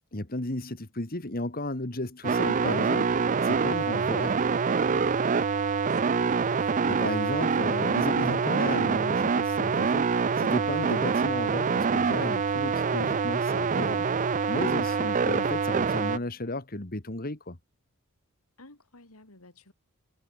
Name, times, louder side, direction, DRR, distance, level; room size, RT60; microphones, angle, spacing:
voice 1, 0.1-3.2 3.4-4.4 6.9-17.6, left 2 dB, 40° left, 2.0 m, -34 dB
sound 1, 2.2-16.2, right 5 dB, 35° right, 0.4 m, -25 dB
voice 2, 5.9-6.6 18.6-19.7, left 2 dB, 80° left, 3.4 m, -53 dB
head